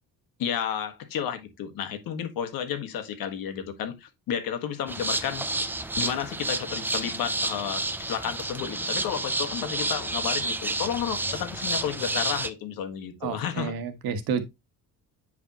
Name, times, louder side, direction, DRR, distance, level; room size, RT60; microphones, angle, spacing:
voice 1, 0.4-5.4 6.0-13.8, left 9 dB, 75° left, 1.7 m, -32 dB
sound 1, 4.9-12.5, right 2 dB, 5° right, 0.4 m, -30 dB
voice 2, 13.2-14.4, right 6 dB, 85° right, 1.6 m, -30 dB
8.9 x 5.0 x 2.9 m
cardioid pair, 160°, 35 cm